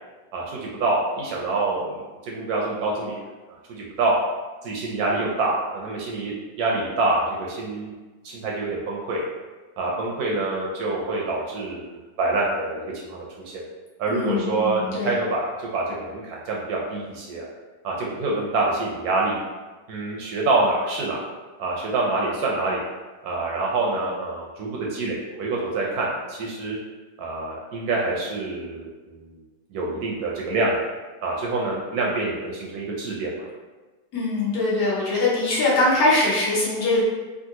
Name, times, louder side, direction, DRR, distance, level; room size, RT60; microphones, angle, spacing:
voice 1, 0.3-3.1 3.5-4.2 4.6-7.9 8.2-9.2 9.8-13.2 13.5-13.6 14.0-17.5 17.8-19.3 19.9-21.2 21.6-22.8 23.2-26.8 27.2-29.3 29.7-30.9 31.2-33.5, right 2 dB, 70° right, -3 dB, 1.0 m, -26 dB
voice 2, 14.1-15.1 34.1-37.0, left 2 dB, 65° left, -7 dB, 1.3 m, -22 dB
3.6 x 2.4 x 2.8 m, 1.2 s
omnidirectional pair, 1.9 m